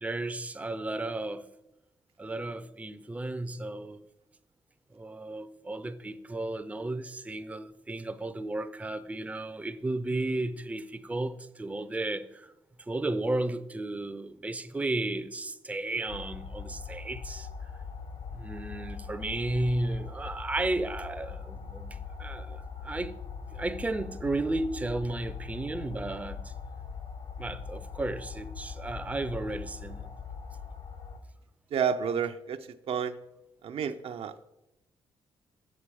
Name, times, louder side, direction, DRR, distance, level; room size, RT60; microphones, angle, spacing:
voice 1, 0.0-1.5 2.2-4.0 4.9-12.5 12.9-17.5 18.3-23.1 23.5-26.5 27.4-30.1, right 2 dB, 15° right, 0.5 m, -33 dB
sound 1, 16.1-31.2, left 5 dB, 70° left, 1.1 m, -41 dB
voice 2, 31.7-33.2 33.6-34.4, right 7 dB, 65° right, 0.5 m, -31 dB
7.3 x 6.7 x 4.8 m
cardioid pair, 75°, 11 cm